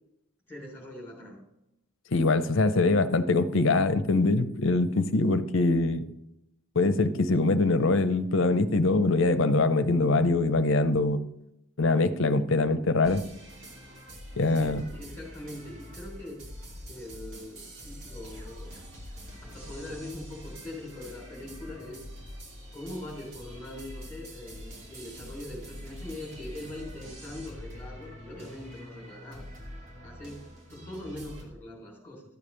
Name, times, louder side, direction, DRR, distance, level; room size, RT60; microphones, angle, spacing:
voice 1, 0.5-1.4 14.5-16.4 16.9-18.8 19.4-22.0 22.7-29.5 30.0-32.2, left 1 dB, 10° left, -2 dB, 3.4 m, -42 dB
voice 2, 2.1-6.1 6.8-11.2 11.8-13.2 14.4-14.8, left 3 dB, 55° left, 11 dB, 0.7 m, -23 dB
sound 1, 13.0-31.4, equal, 55° right, 2.8 m, -44 dB
13.0 x 7.0 x 3.3 m, 0.85 s
head